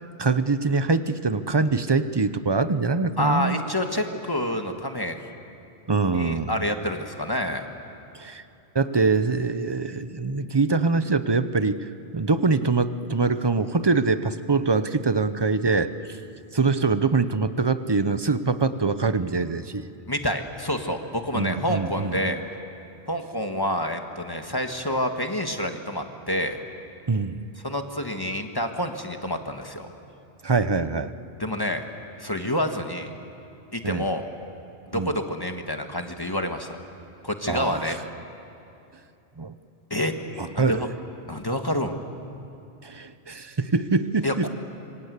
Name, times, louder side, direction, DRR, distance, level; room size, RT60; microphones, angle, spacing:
voice 1, 0.2-3.6 5.9-6.5 8.1-8.4 8.7-11.8 12.1-16.2 16.5-19.8 21.3-22.4 27.1-27.3 30.4-31.1 33.8-34.0 34.9-35.1 37.5-38.0 39.4-39.5 40.4-40.9 42.8-44.5, right 4 dB, 25° right, 12 dB, 0.7 m, -24 dB
voice 2, 3.2-5.2 6.1-7.7 20.1-22.4 23.1-26.6 27.6-29.9 31.4-31.8 32.2-33.1 33.7-34.2 34.9-36.8 37.2-38.0 39.9-40.1 40.5-40.9 41.3-41.9 44.2-44.5, left 1 dB, 20° left, 5 dB, 1.6 m, -28 dB
27.0 x 25.0 x 8.2 m, 2.8 s
omnidirectional pair, 1.1 m